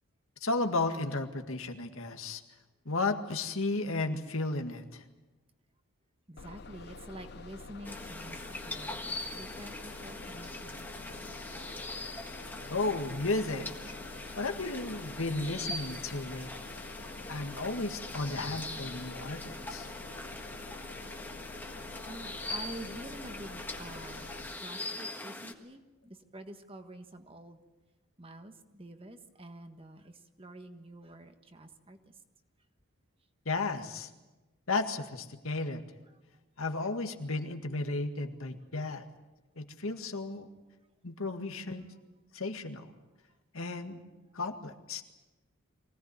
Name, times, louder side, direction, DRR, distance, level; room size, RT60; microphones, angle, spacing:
voice 1, 0.4-2.4 2.9-5.0 12.6-13.9 14.4-16.7 17.3-19.9 33.5-34.1 34.7-35.8 36.6-39.0 39.6-40.5 41.0-41.9 42.3-42.9 43.5-44.0 44.3-45.0, left 3 dB, 70° left, 6 dB, 1.9 m, -34 dB
voice 2, 6.3-8.4 8.6-11.5 20.7-20.8 22.0-24.3 24.6-27.6 28.2-32.2 36.1-36.2, right 1 dB, 25° right, 7 dB, 1.5 m, -48 dB
Bus, 6.4-24.5, left 4 dB, 50° left, 0.7 m, -48 dB
sound 1, 7.8-25.5, left 2 dB, 10° left, 1.5 m, -42 dB
24.0 x 17.5 x 9.6 m, 1.1 s
head